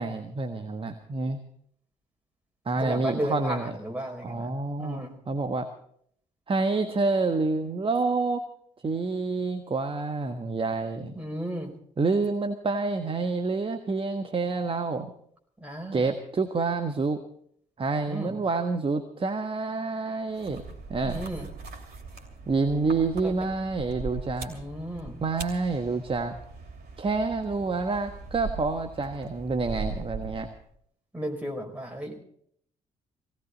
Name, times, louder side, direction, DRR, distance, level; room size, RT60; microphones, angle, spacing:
voice 1, 0.0-1.4 2.6-3.7 4.2-5.7 6.5-8.4 8.8-11.1 12.0-15.1 15.9-17.2 17.8-20.6 20.9-21.2 22.5-24.5 25.2-26.4 27.0-30.5, right 3 dB, 30° right, 6 dB, 1.4 m, -28 dB
voice 2, 2.8-4.5 4.8-5.2 11.1-11.7 15.6-16.1 18.1-18.4 21.0-21.5 23.2-23.3 24.5-25.2 31.1-32.2, equal, 5° right, 1 dB, 5.0 m, -34 dB
sound 1, 20.3-30.7, right 4 dB, 55° right, 2.7 m, -40 dB
18.5 x 17.5 x 4.1 m, 0.63 s
figure-of-eight pair, 45°, 19 cm